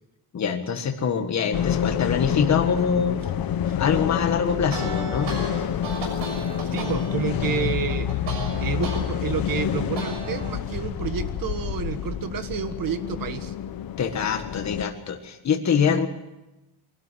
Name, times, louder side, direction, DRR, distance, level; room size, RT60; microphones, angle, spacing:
voice 1, 0.3-3.2 3.8-5.6 14.0-16.1, left 6 dB, 40° left, 5 dB, 1.6 m, -24 dB
sound 1, 1.5-14.8, left 9 dB, 55° left, 1.0 m, -28 dB
sound 2, 4.5-9.0 9.4-10.6, right 4 dB, 90° right, 6.5 m, -35 dB
voice 2, 6.7-8.1 8.6-13.5, right 7 dB, 50° right, 10 dB, 1.5 m, -30 dB
23.5 x 12.5 x 9.9 m, 1.0 s
wide cardioid pair, 175°, 42 cm